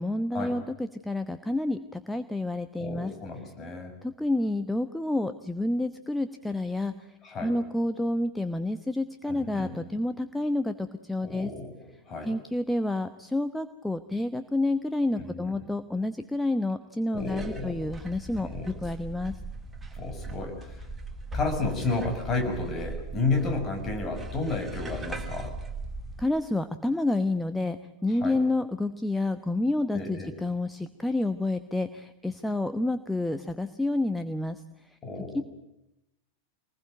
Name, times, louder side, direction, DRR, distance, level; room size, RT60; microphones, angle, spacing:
voice 1, 0.0-3.1 4.0-6.9 7.4-11.5 12.2-19.4 26.2-35.0 35.3-35.4, left 2 dB, 5° left, 9 dB, 1.1 m, -29 dB
voice 2, 2.8-3.9 7.2-7.5 9.3-9.8 11.2-11.7 12.1-12.3 15.2-15.5 17.1-17.8 18.3-18.7 19.9-20.8 21.3-25.5 28.1-28.4 29.9-30.3 35.0-35.4, left 3 dB, 25° left, 6 dB, 6.6 m, -32 dB
sound 1, 17.2-26.3, right 2 dB, 10° right, 3.0 m, -39 dB
26.5 x 20.5 x 9.2 m, 0.87 s
figure-of-eight pair, 90°, 0 cm